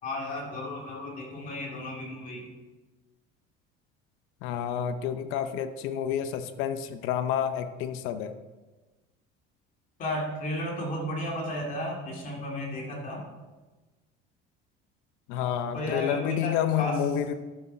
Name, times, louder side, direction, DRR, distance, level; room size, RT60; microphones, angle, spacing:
voice 1, 0.0-2.5 10.0-13.3 15.7-17.2, left 1 dB, 40° left, -2 dB, 2.3 m, -33 dB
voice 2, 4.4-8.3 15.3-17.3, left 9 dB, 70° left, 10 dB, 0.7 m, -29 dB
12.0 x 6.1 x 4.2 m, 1.2 s
cardioid pair, 170°, 21 cm